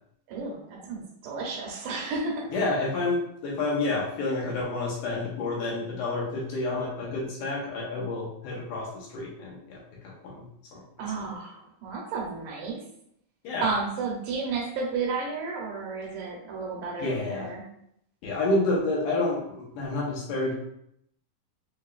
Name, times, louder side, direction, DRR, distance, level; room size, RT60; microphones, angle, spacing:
voice 1, 0.3-2.5 11.0-12.8 13.6-17.6, right 4 dB, 75° right, -1 dB, 2.3 m, -32 dB
voice 2, 2.5-10.4 10.7-10.8 11.1-11.2 13.4-13.7 17.0-17.5 18.2-20.5, left 2 dB, 70° left, -4 dB, 2.3 m, -29 dB
6.6 x 2.7 x 2.4 m, 0.73 s
omnidirectional pair, 4.3 m